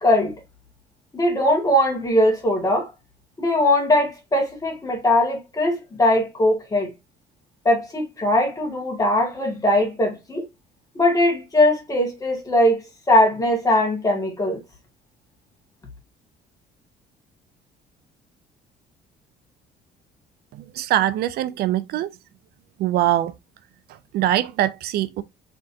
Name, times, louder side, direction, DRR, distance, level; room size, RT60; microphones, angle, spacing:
voice 1, 0.0-0.3 1.1-2.9 3.4-6.9 7.7-10.4 11.0-12.8 13.1-14.6, left 1 dB, 20° left, 2.0 m, -20 dB
voice 2, 20.8-22.1 22.8-23.3 24.1-25.2, right 13 dB, 70° right, 0.4 m, -22 dB
4.3 x 3.7 x 2.7 m
cardioid pair, 110°, 17 cm